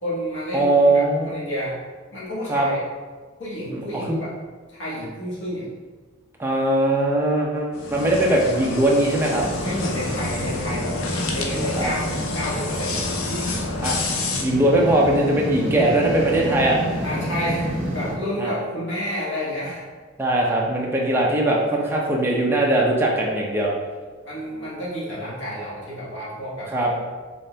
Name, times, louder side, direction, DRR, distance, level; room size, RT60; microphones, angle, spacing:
voice 1, 0.0-1.8 2.1-2.8 3.4-4.3 4.7-5.7 9.6-11.0 11.3-13.6 17.0-19.9 24.2-26.7, equal, 60° left, -8 dB, 1.3 m, -30 dB
voice 2, 0.5-1.4 2.5-2.7 3.7-3.8 4.1-4.2 6.4-9.4 11.8-11.9 13.8-14.1 14.4-16.8 18.4-18.5 20.2-23.7 26.7-26.9, right 1 dB, 10° right, -2 dB, 0.6 m, -20 dB
sound 1, 7.7-14.4, left 4 dB, 85° left, 0.6 m, -29 dB
sound 2, 9.3-18.1, right 1 dB, 60° right, 1.4 m, -29 dB
4.2 x 3.3 x 3.3 m, 1.4 s
head